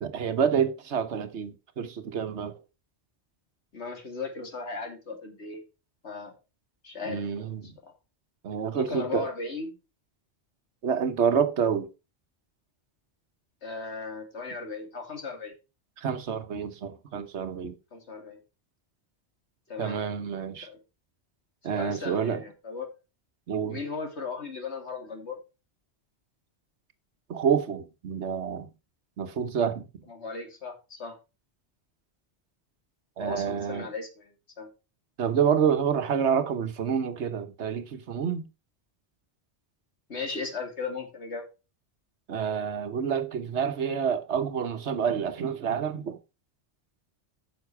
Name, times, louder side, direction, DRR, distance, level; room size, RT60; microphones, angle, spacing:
voice 1, 0.0-2.6 7.1-7.7 8.4-9.2 10.8-11.9 16.0-17.7 19.8-20.7 21.6-22.4 23.5-23.8 27.3-28.7 29.2-29.8 33.2-33.9 35.2-38.5 42.3-46.2, right 7 dB, 85° right, 1.3 m, -28 dB
voice 2, 3.7-5.6 6.0-6.4 6.8-7.7 8.7-9.7 13.6-15.5 17.9-18.4 19.7-20.0 20.6-20.8 21.7-22.9 23.7-25.4 30.1-31.2 33.2-34.7 40.1-41.4, left 4 dB, 80° left, 2.7 m, -37 dB
9.6 x 6.4 x 4.7 m
omnidirectional pair, 1.1 m